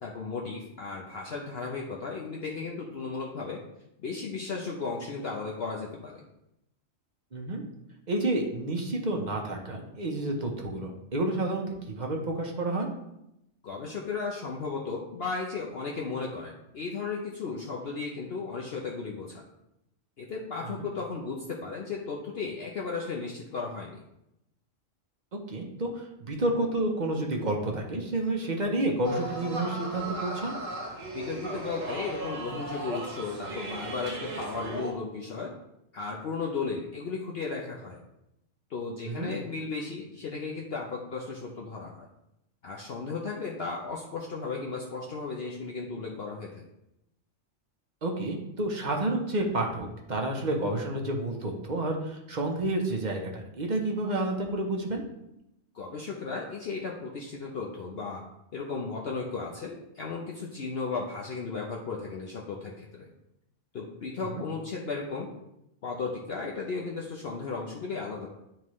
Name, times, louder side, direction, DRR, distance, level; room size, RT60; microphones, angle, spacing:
voice 1, 0.0-3.6 4.0-6.3 13.6-19.4 20.2-24.0 31.1-35.5 35.9-38.0 38.7-42.1 42.6-46.6 55.7-58.2 58.5-63.1 63.7-65.3 65.8-68.3, left 4 dB, 55° left, -2 dB, 0.9 m, -35 dB
voice 2, 7.3-7.6 8.1-12.9 20.6-20.9 25.5-30.6 39.1-39.3 48.0-55.0 64.3-64.4, right 2 dB, 40° right, 1 dB, 0.9 m, -30 dB
sound 1, 29.0-34.9, right 1 dB, 75° right, 1.7 m, -36 dB
10.5 x 3.7 x 3.1 m, 0.85 s
omnidirectional pair, 1.3 m